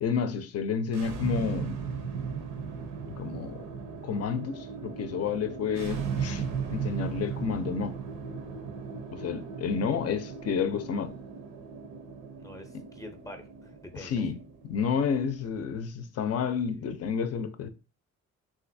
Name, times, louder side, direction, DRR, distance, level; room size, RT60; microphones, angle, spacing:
voice 1, 0.0-1.8 3.2-3.6 4.0-6.4 6.7-8.0 9.1-11.2 14.0-14.4 14.6-17.7, left 6 dB, 55° left, 0.5 m, -30 dB
sound 1, 0.8-15.8, right 6 dB, 85° right, 0.7 m, -37 dB
voice 2, 12.4-14.1 16.7-16.9, left 1 dB, 10° left, 0.6 m, -46 dB
3.3 x 2.5 x 2.6 m
cardioid pair, 90°, 30 cm